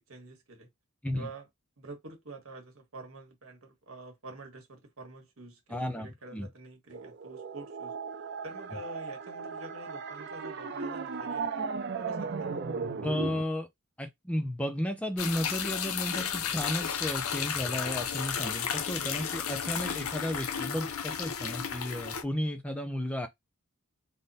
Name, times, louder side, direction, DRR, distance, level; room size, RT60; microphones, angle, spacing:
voice 1, 0.1-0.7 1.1-1.5 1.8-7.9 8.4-11.5 12.0-12.6, right 2 dB, 70° right, 1.3 m, -47 dB
voice 2, 5.7-6.5 13.0-13.7 14.0-23.3, left 1 dB, 5° left, 0.4 m, -33 dB
sound 1, 6.9-13.4, right 5 dB, 50° right, 0.5 m, -36 dB
sound 2, 15.2-22.2, left 7 dB, 80° left, 0.6 m, -33 dB
3.5 x 2.0 x 4.0 m
head